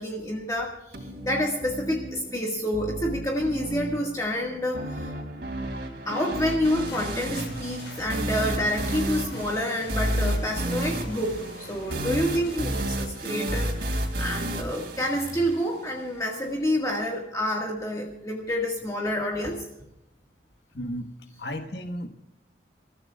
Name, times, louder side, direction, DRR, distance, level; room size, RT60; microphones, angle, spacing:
voice 1, 0.0-5.1 6.0-19.7, equal, 20° left, -1 dB, 1.7 m, -28 dB
sound 1, 0.9-15.9, right 1 dB, 60° right, 3.5 m, -32 dB
sound 2, 6.6-12.6, left 2 dB, 80° left, 6.1 m, -42 dB
voice 2, 20.7-21.1 21.4-22.1, equal, 65° left, 5 dB, 1.4 m, -33 dB
29.0 x 14.5 x 2.4 m, 0.89 s
head